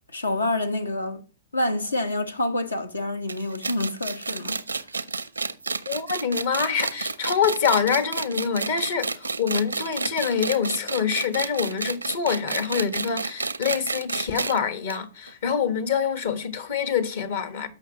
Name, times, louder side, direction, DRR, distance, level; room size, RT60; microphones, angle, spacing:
voice 1, 0.1-1.2 1.5-4.6, left 1 dB, 85° left, 1.1 m, -27 dB
sound 1, 3.3-14.6 14.9-15.0 15.3-15.4 16.2-16.3, right 4 dB, 85° right, 0.6 m, -30 dB
voice 2, 5.9-17.7, left 7 dB, 60° left, 1.4 m, -26 dB
13.5 x 5.6 x 2.9 m
figure-of-eight pair, 110°, 0 cm